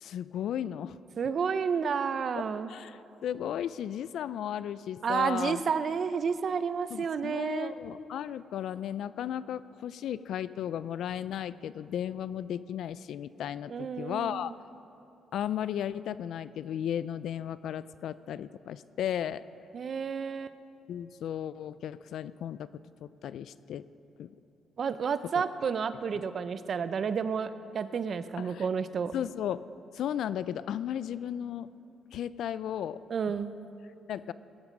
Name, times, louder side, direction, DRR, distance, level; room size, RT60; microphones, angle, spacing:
voice 1, 0.0-1.0 2.3-2.4 2.7-5.6 6.9-14.5 15.3-19.4 20.9-22.7 23.0-23.9 24.2-24.3 26.1-26.2 28.4-28.7 29.1-29.6 29.9-31.7 32.1-33.0 34.1-34.3, left 10 dB, 75° left, 16 dB, 0.4 m, -35 dB
voice 2, 1.2-2.7 5.0-7.7 13.7-14.5 19.7-20.5 24.8-29.1 33.1-33.5, right 6 dB, 50° right, 12 dB, 0.6 m, -31 dB
18.5 x 12.0 x 5.3 m, 2.8 s
cardioid pair, 90°, 0 cm